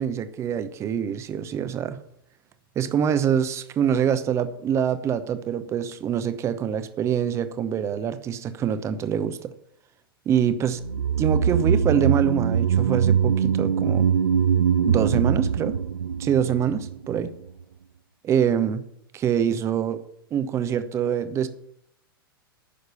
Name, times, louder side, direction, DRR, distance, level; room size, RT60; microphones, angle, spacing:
voice 1, 0.0-2.0 2.8-9.5 10.3-10.8 11.2-14.1 14.9-15.8 16.2-17.3 18.2-18.8 19.1-20.0 20.3-21.5, right 8 dB, 25° right, 13 dB, 0.8 m, -25 dB
sound 1, 10.8-17.2 17.5-17.6, right 7 dB, 75° right, 0.5 m, -22 dB
10.0 x 6.5 x 7.0 m, 0.74 s
figure-of-eight pair, 100°, 12 cm